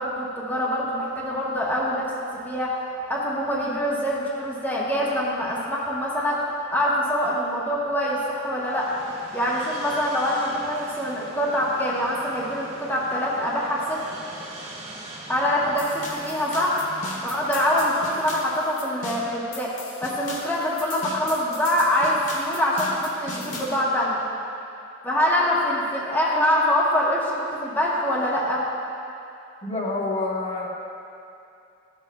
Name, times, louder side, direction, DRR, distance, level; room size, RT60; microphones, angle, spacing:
voice 1, 0.0-2.1 2.4-2.7 3.1-6.4 6.7-8.9 9.3-14.0 15.3-16.8 17.2-19.7 20.0-24.2 25.0-28.6, equal, 10° left, -7 dB, 1.0 m, -24 dB
sound 1, 8.5-18.7, right 1 dB, 35° right, 2.1 m, -42 dB
sound 2, 15.8-23.8, left 2 dB, 80° left, 1.4 m, -38 dB
voice 2, 29.6-30.7, left 2 dB, 35° left, -4 dB, 1.1 m, -27 dB
14.0 x 7.2 x 2.3 m, 2.6 s
head